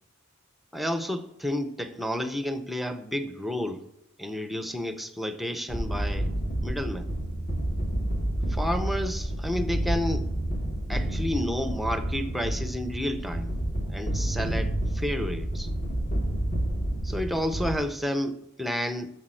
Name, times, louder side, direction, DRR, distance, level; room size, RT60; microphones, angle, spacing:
voice 1, 0.7-3.9 4.2-6.3 6.6-7.1 8.5-10.3 10.9-13.6 13.9-15.7 17.0-19.1, left 1 dB, ahead, 0.7 m, -31 dB
sound 1, 5.7-17.7, right 1 dB, 40° left, 1.6 m, -29 dB
8.6 x 6.9 x 7.6 m
head